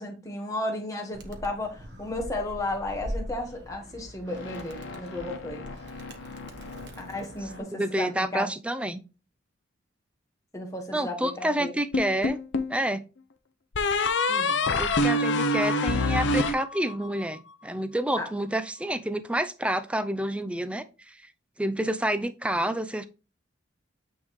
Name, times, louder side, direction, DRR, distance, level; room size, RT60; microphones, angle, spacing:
voice 1, 0.0-5.7 7.0-8.4 10.5-11.7 14.3-14.6 15.3-15.5 18.2-18.3, left 1 dB, 15° left, 1.3 m, -34 dB
Animal, 1.1-7.6, equal, 60° right, 1.1 m, -42 dB
sound 1, 4.3-8.4, left 3 dB, 85° left, 1.0 m, -43 dB
voice 2, 7.7-9.0 10.9-12.4 12.7-13.0 14.8-21.2 21.6-23.1, right 1 dB, 5° right, 0.4 m, -28 dB
sound 2, 11.9-12.8 13.7-17.2, left 2 dB, 70° left, 0.6 m, -25 dB
8.8 x 3.6 x 3.1 m
head